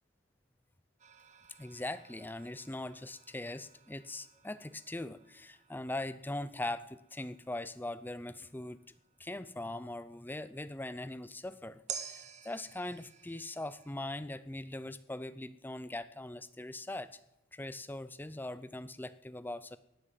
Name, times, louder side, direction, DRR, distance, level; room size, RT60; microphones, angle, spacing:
sound 1, 1.0-10.4 11.9-13.9, right 7 dB, 35° right, 1.1 m, -51 dB
voice 1, 1.6-8.8 9.2-17.2 17.5-19.8, left 1 dB, 10° left, 14 dB, 0.5 m, -41 dB
18.5 x 10.0 x 7.6 m, 0.93 s
head